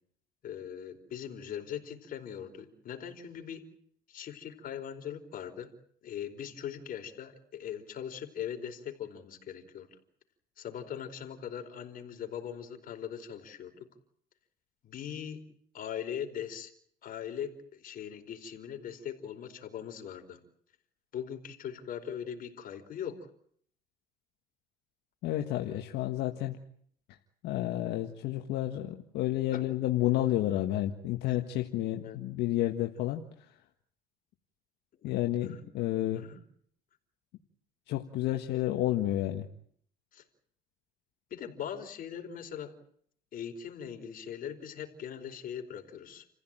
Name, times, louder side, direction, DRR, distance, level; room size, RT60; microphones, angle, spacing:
voice 1, 0.4-3.6 4.1-5.7 6.0-9.9 10.6-13.9 14.8-15.4 15.7-16.7 17.0-20.4 21.1-23.2 29.5-29.6 32.0-32.2 35.0-35.6 36.1-36.4 40.1-40.2 41.3-42.7 43.3-46.2, left 9 dB, 55° left, 5 dB, 4.7 m, -40 dB
voice 2, 25.2-26.6 27.4-33.2 35.0-36.2 37.9-39.5, left 14 dB, 85° left, 4 dB, 1.7 m, -30 dB
30.0 x 15.5 x 9.1 m, 0.65 s
cardioid pair, 110°, 17 cm